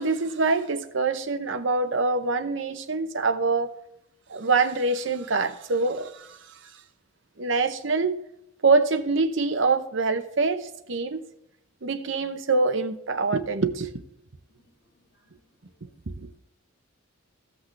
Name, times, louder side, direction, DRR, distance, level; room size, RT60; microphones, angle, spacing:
voice 1, 0.0-3.7 4.3-6.4 7.4-8.2 8.6-11.2 11.8-13.9 16.2-16.4, right 3 dB, 60° right, 0.8 m, -25 dB
voice 2, 14.6-15.3 15.7-16.3, left 2 dB, 50° left, 1.8 m, -66 dB
15.0 x 6.0 x 3.3 m
head